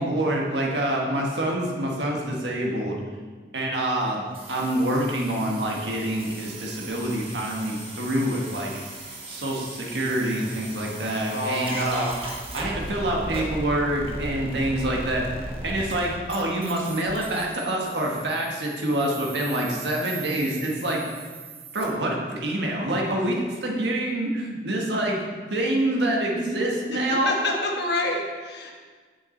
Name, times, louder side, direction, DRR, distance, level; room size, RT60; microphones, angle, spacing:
voice 1, 0.0-3.0 3.5-8.7 9.3-12.1 12.5-15.2 15.6-21.0 21.7-27.5, right 1 dB, 75° right, -1 dB, 1.4 m, -26 dB
sound 1, 4.3-21.9, right 1 dB, 30° right, 1.3 m, -38 dB
voice 2, 11.3-12.1 26.9-28.7, left 2 dB, 70° left, 1 dB, 1.2 m, -28 dB
7.1 x 6.6 x 4.4 m, 1.5 s
head